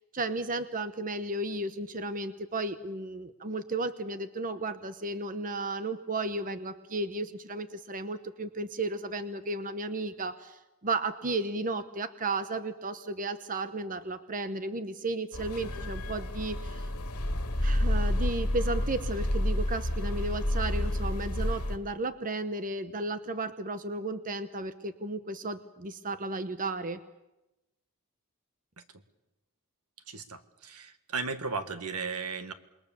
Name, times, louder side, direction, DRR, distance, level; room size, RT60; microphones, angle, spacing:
voice 1, 0.1-16.9 17.6-27.0, right 2 dB, 40° right, 11 dB, 1.0 m, -34 dB
sound 1, 15.3-21.8, left 1 dB, 80° left, 2.4 m, -30 dB
voice 2, 30.1-32.5, right 4 dB, 80° right, 9 dB, 1.7 m, -35 dB
27.5 x 21.5 x 7.1 m, 0.97 s
head